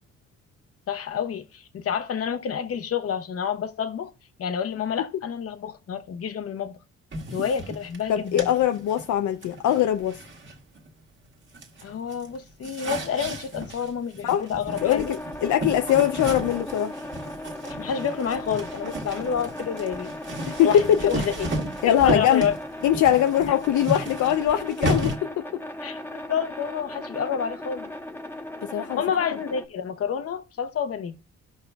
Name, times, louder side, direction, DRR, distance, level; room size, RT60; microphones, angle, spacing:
voice 1, 0.9-4.1 4.4-6.8 7.3-8.5 11.8-15.1 17.6-20.1 20.6-21.5 22.0-22.5 25.8-27.9 28.9-31.2, left 7 dB, 50° left, 0.9 m, -29 dB
sound 1, 7.1-11.3 11.5-25.2, right 1 dB, 40° right, 1.7 m, -34 dB
voice 2, 8.1-10.2 14.2-14.4 14.8-16.9 20.5-21.0 21.8-22.4 22.8-25.6 28.6-29.0, left 10 dB, 75° left, 0.6 m, -22 dB
sound 2, 14.7-29.7, left 1 dB, 10° left, 1.1 m, -37 dB
15.5 x 5.5 x 2.3 m
cardioid pair, 90°, 30 cm